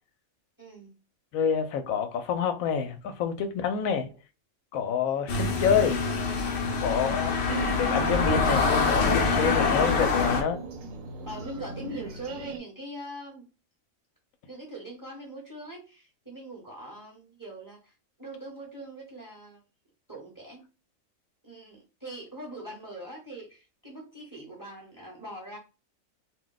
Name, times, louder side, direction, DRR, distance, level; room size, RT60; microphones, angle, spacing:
voice 1, 0.6-0.9 5.2-5.4 6.0-6.1 6.9-7.4 11.3-13.4 14.5-17.9 18.2-19.6 20.1-20.6 21.4-25.6, right 1 dB, 15° right, 0.9 m, -42 dB
voice 2, 1.3-4.1 4.7-6.0 6.8-7.4 7.7-10.6, left 7 dB, 85° left, 1.0 m, -27 dB
sound 1, 5.3-10.4, left 4 dB, 60° left, 0.8 m, -25 dB
sound 2, 7.5-12.6, right 2 dB, 75° right, 1.0 m, -37 dB
2.5 x 2.2 x 3.8 m
omnidirectional pair, 1.4 m